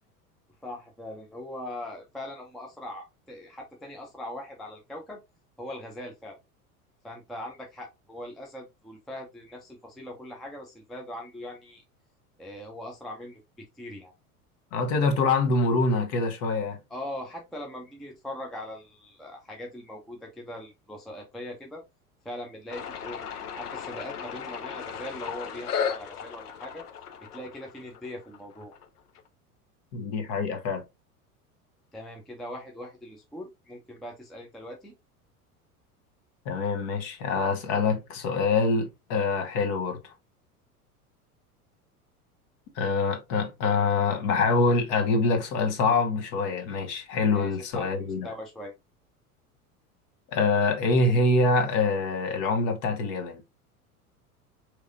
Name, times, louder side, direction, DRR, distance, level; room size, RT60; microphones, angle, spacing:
voice 1, 0.6-5.2 5.6-6.4 7.0-11.8 12.4-14.1 16.9-21.8 22.2-23.3 23.6-26.8 27.3-28.7 31.9-34.9 47.3-48.0 48.2-48.7, left 1 dB, ahead, 0.4 m, -40 dB
voice 2, 14.7-16.8 29.9-30.8 36.4-40.1 42.7-48.3 50.3-53.4, left 3 dB, 50° left, 1.2 m, -25 dB
sound 1, 22.7-29.2, left 7 dB, 80° left, 0.7 m, -36 dB
4.7 x 3.2 x 2.5 m
figure-of-eight pair, 85°, 46 cm